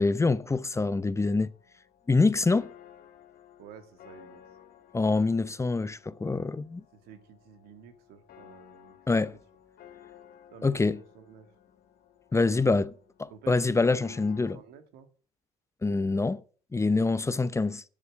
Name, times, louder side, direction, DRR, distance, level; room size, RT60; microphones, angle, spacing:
voice 1, 0.0-1.5 2.1-2.7 4.9-6.8 9.1-9.3 10.6-11.0 12.3-12.9 13.2-14.6 15.8-16.4 16.7-17.8, left 3 dB, 20° left, 0.8 m, -25 dB
sound 1, 1.2-14.5, left 10 dB, 70° left, 2.4 m, -55 dB
voice 2, 3.6-4.4 7.0-9.0 9.3-9.4 10.5-11.5 13.3-14.2 14.5-15.1 17.0-17.4, right 8 dB, 80° right, 2.3 m, -51 dB
9.8 x 7.9 x 7.7 m
supercardioid pair, 80°, 16 cm